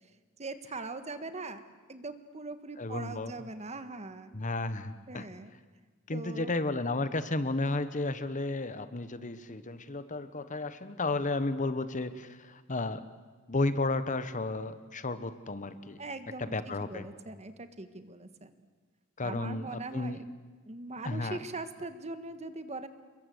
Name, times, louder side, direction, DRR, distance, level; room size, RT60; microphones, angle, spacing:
voice 1, 0.4-1.6 1.9-4.3 5.1-5.5 6.1-6.5 16.0-16.5 16.8-18.5 19.2-20.2 20.6-22.9, right 3 dB, 30° right, 10 dB, 1.5 m, -41 dB
voice 2, 2.8-3.3 4.3-5.3 6.1-13.0 13.5-16.0 16.4-17.1 19.2-20.2 21.0-21.4, left 2 dB, 35° left, 12 dB, 1.1 m, -33 dB
28.5 x 22.5 x 8.0 m, 1.4 s
head